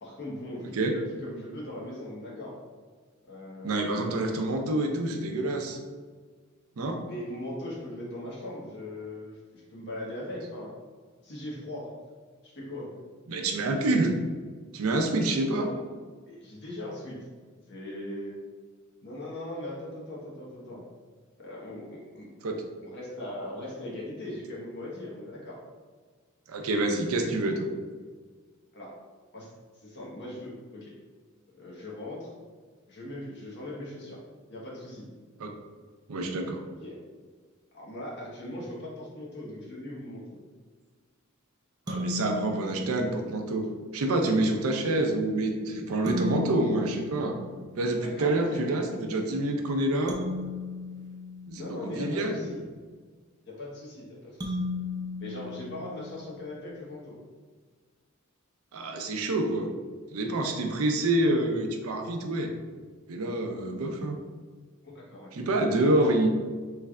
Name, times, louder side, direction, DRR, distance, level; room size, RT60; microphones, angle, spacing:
voice 1, 0.0-2.5 3.3-3.9 7.1-10.8 11.2-11.9 12.4-13.0 16.3-17.2 17.7-18.4 19.0-20.8 21.4-22.3 22.8-25.6 28.7-28.9 29.3-29.5 29.8-30.9 31.5-32.3 32.9-34.2 34.5-35.1 36.8-37.0 37.7-40.4 44.9-45.1 48.0-48.8 51.5-52.6 53.5-54.6 55.2-57.2 64.8-65.3 66.0-66.1, left 1 dB, 55° left, -4 dB, 0.9 m, -39 dB
voice 2, 3.6-5.8 6.8-7.0 13.3-14.1 14.7-15.7 22.4-22.6 26.5-27.7 35.4-35.5 36.1-36.6 41.9-43.7 43.9-47.4 47.8-50.2 51.5-52.4 58.7-59.7 60.1-62.5 63.1-64.2 65.3-66.3, right 2 dB, 80° right, 4 dB, 0.5 m, -27 dB
sound 1, 41.9-43.5 46.1-48.1 50.1-52.2 54.4-56.5, left 3 dB, 20° right, 0.4 m, -36 dB
3.2 x 2.2 x 3.5 m, 1.5 s
head